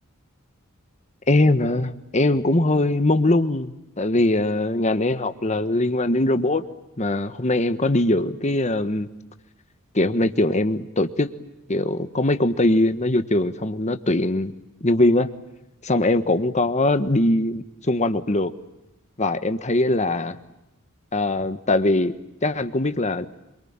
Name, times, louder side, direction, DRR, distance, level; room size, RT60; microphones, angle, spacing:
voice 1, 1.3-6.6 7.0-9.1 9.9-11.3 11.7-14.5 14.8-15.3 15.8-18.5 19.2-20.4 21.1-22.1 22.4-23.3, left 2 dB, 35° left, 10 dB, 1.3 m, -21 dB
26.5 x 24.0 x 8.8 m, 0.91 s
head